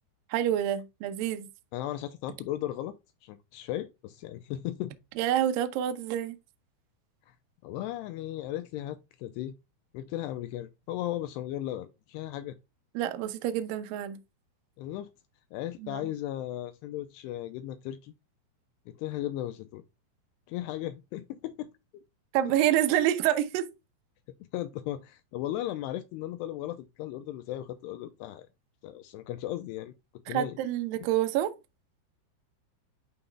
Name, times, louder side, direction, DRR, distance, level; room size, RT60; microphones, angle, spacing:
voice 1, 0.3-1.5 5.2-6.4 13.0-14.2 15.8-16.1 22.3-23.7 30.3-31.5, right 12 dB, 90° right, 1.9 m, -27 dB
voice 2, 1.7-2.9 3.2-4.9 7.6-9.5 9.9-12.6 14.8-15.1 15.5-18.1 18.9-19.8 20.5-21.7 21.9-22.0 24.5-28.5 28.8-29.9 30.3-30.6, left 13 dB, 85° left, 2.5 m, -36 dB
11.5 x 3.9 x 2.3 m
omnidirectional pair, 5.3 m